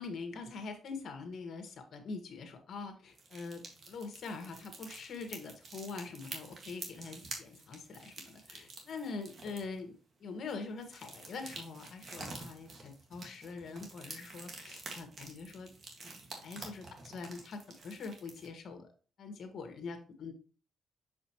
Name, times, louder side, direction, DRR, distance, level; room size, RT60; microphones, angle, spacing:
voice 1, 0.0-9.9 10.2-15.7 16.0-18.9 19.2-20.3, left 4 dB, 60° left, 6 dB, 1.4 m, -44 dB
sound 1, 3.1-9.8 10.4-18.5, right 3 dB, 50° right, 1.8 m, -48 dB
6.2 x 5.1 x 3.0 m, 0.38 s
cardioid pair, 95°, 0 cm